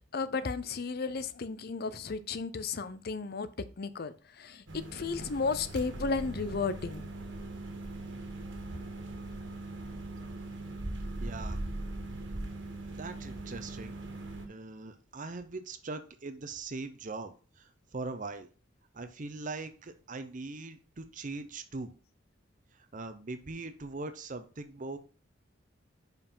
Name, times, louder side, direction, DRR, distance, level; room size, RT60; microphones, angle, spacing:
voice 1, 0.1-3.5 3.8-4.6 4.9-7.0, left 4 dB, 55° left, 0.6 m, -34 dB
sound 1, 4.7-14.5, right 2 dB, 65° right, 1.7 m, -40 dB
voice 2, 11.2-11.6 12.9-13.9 14.5-18.5 18.9-21.9 22.9-25.0, right 3 dB, 40° right, 0.7 m, -41 dB
5.3 x 4.8 x 5.4 m
head